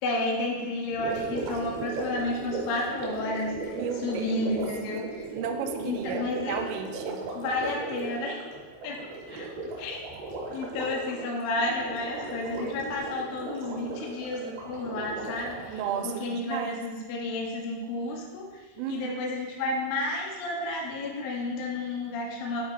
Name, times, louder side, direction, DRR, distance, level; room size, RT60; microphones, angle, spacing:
voice 1, 0.0-5.3 5.8-6.6 7.3-8.4 8.8-9.0 9.3-9.5 9.8-10.0 10.5-18.6 18.9-22.6, left 2 dB, 80° left, -1 dB, 2.0 m, -31 dB
Gurgling, 0.9-16.2, right 2 dB, 70° right, 3.3 m, -36 dB
voice 2, 3.7-4.4 5.3-7.3 9.3-9.5 15.6-16.9 18.8-19.2, right 8 dB, 90° right, 6 dB, 3.2 m, -34 dB
9.2 x 3.6 x 4.6 m, 1.3 s
omnidirectional pair, 5.6 m